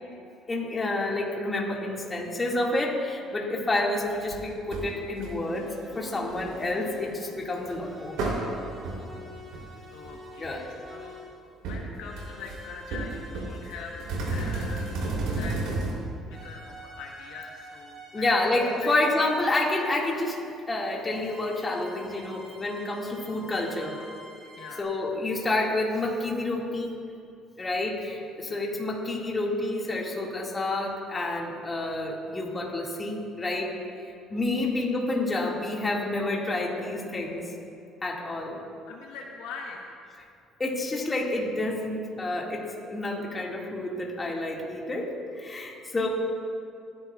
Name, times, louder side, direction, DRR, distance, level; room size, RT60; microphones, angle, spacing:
voice 1, 0.5-8.6 10.4-10.7 18.1-20.4 20.7-24.0 24.8-26.9 27.6-37.4 38.0-38.6 40.6-46.1, left 2 dB, 20° left, -2 dB, 2.0 m, -29 dB
sound 1, 4.3-4.4 4.7-4.9 5.2-5.6 6.0-6.6 7.7-7.8 8.2-8.4 8.8-9.0 9.5-9.8 10.0-10.1 10.4-10.8 11.6-11.8 12.2-12.6 12.9-15.9, right 3 dB, 85° right, 3.3 m, -31 dB
sound 2, 5.4-7.3 7.8-11.4 12.0-15.9 16.3-20.2 21.1-24.8, equal, 30° right, 3.0 m, -47 dB
voice 2, 9.6-11.2 11.6-14.0 14.3-14.9 15.3-15.6 16.2-18.3 18.8-18.9 24.5-24.8 28.5-28.7 34.3-34.7 38.9-39.9, left 5 dB, 80° left, 0 dB, 1.2 m, -43 dB
27.0 x 11.0 x 2.4 m, 2.5 s
cardioid pair, 130°, 0 cm